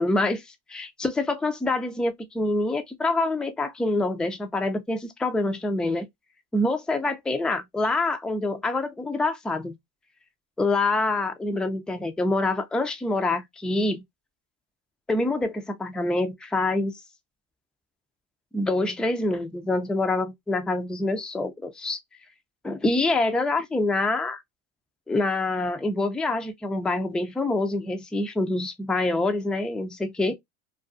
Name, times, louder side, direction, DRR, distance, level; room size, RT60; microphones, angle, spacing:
voice 1, 0.0-6.1 6.5-9.7 10.6-14.0 15.1-16.9 18.5-22.0 22.6-24.4 25.1-30.3, left 2 dB, 5° left, 0.3 m, -26 dB
2.4 x 2.2 x 2.4 m
supercardioid pair, 90°, 31 cm